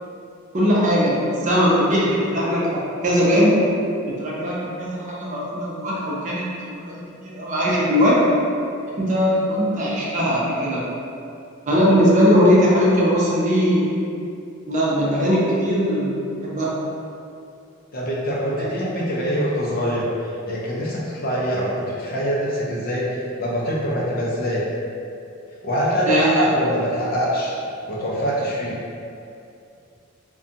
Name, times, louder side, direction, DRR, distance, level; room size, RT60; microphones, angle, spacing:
voice 1, 0.5-3.6 4.1-8.2 9.0-10.8 11.7-13.9 14.6-16.1 16.4-16.8 18.6-18.8 26.1-26.4, equal, 35° right, -6 dB, 0.5 m, -20 dB
voice 2, 17.9-23.1 23.4-24.6 25.6-27.5 27.9-28.8, equal, 45° left, -5 dB, 0.5 m, -24 dB
2.6 x 2.2 x 2.5 m, 2.6 s
head